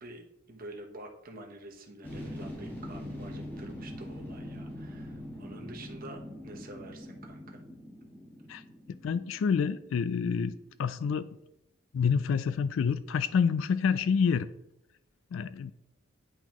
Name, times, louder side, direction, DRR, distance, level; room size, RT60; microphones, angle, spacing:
voice 1, 0.0-7.6, right 2 dB, 45° right, 1 dB, 1.0 m, -47 dB
sound 1, 2.0-10.6 10.9-11.0, left 1 dB, 10° left, 1.4 m, -43 dB
voice 2, 9.0-11.3 11.9-14.5 15.3-15.7, left 6 dB, 65° left, 14 dB, 0.3 m, -28 dB
10.0 x 3.8 x 3.0 m, 0.87 s
head